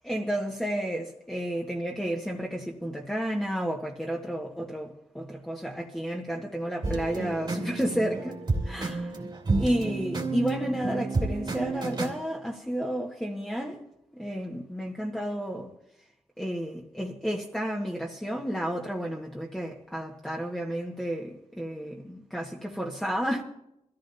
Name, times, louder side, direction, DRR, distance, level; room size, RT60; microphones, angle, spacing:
voice 1, 0.0-9.1 9.6-13.8 14.1-15.7 16.4-23.4, equal, 5° left, 1.7 m, -31 dB
sound 1, 6.8-12.2, right 3 dB, 40° right, 2.5 m, -30 dB
23.5 x 14.5 x 2.8 m
wide cardioid pair, 90°, 11 cm